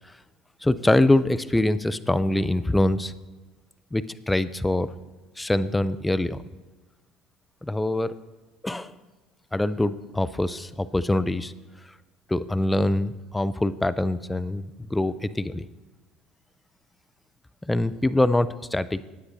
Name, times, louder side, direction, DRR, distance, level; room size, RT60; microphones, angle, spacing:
voice 1, 0.6-3.1 3.9-4.9 5.4-6.4 7.6-8.2 8.6-8.9 9.5-11.5 12.3-15.7 17.7-19.0, left 1 dB, 10° left, 15 dB, 0.4 m, -24 dB
16.0 x 9.6 x 2.7 m, 1.3 s
hypercardioid pair, 80°, 0 cm